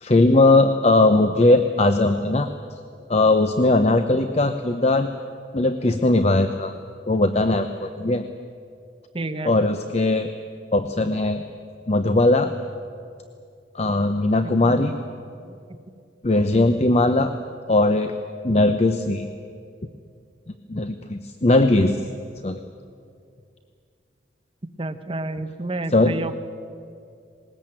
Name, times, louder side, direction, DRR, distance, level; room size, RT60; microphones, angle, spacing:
voice 1, 0.0-2.5 3.1-5.1 5.5-6.7 7.1-8.2 9.4-10.3 10.7-11.4 11.9-12.5 13.7-14.9 16.2-17.3 17.7-18.1 18.4-19.3 20.7-22.0 22.4-22.6 25.9-26.1, left 2 dB, 40° left, 8 dB, 0.7 m, -19 dB
voice 2, 9.1-9.5 14.4-14.9 24.8-26.4, right 2 dB, 30° right, 8 dB, 0.9 m, -30 dB
20.0 x 19.5 x 8.9 m, 2.4 s
head